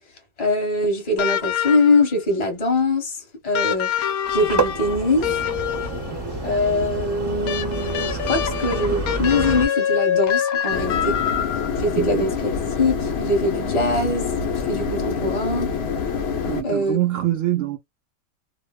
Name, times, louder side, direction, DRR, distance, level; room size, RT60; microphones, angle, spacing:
voice 1, 0.4-3.9 4.3-5.2 6.4-11.2 11.8-12.5 12.8-14.2 14.7-15.7 16.6-17.0, left 2 dB, 25° left, 0.9 m, -22 dB
sound 1, 1.2-2.1 3.5-6.1 7.5-11.9 13.3-13.4, left 10 dB, 70° left, 0.9 m, -25 dB
sound 2, 4.2-9.7, right 2 dB, 30° right, 0.4 m, -28 dB
sound 3, 10.7-16.6, left 6 dB, 90° left, 0.5 m, -26 dB
voice 2, 12.0-12.3 16.5-17.8, right 14 dB, 80° right, 0.7 m, -24 dB
2.8 x 2.1 x 2.2 m
omnidirectional pair, 1.9 m